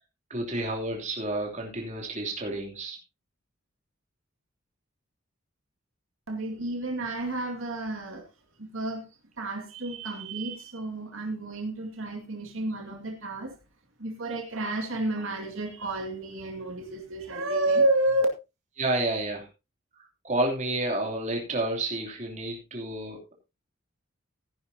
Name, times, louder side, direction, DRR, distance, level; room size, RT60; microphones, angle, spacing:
voice 1, 0.3-3.0 18.8-19.5 20.0-23.3, right 2 dB, 35° right, 1 dB, 3.0 m, -30 dB
voice 2, 6.3-8.3 8.6-9.0 9.4-13.6 14.0-18.3, right 1 dB, 75° right, 3 dB, 2.3 m, -30 dB
15.5 x 10.5 x 2.8 m, 0.26 s
head